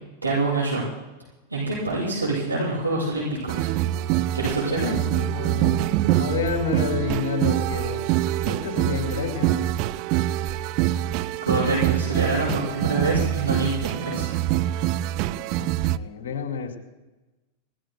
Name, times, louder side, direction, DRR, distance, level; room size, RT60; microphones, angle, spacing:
voice 1, 0.2-0.8 1.5-3.7 4.3-4.9 11.4-14.3, right 2 dB, 80° right, -7 dB, 6.4 m, -25 dB
sound 1, 3.5-16.0, right 14 dB, 40° right, 0.5 m, -25 dB
voice 2, 4.7-8.1 8.5-9.7 15.5-16.8, left 6 dB, 55° left, 4 dB, 2.7 m, -30 dB
29.5 x 18.5 x 2.2 m, 1.1 s
figure-of-eight pair, 90°, 0 cm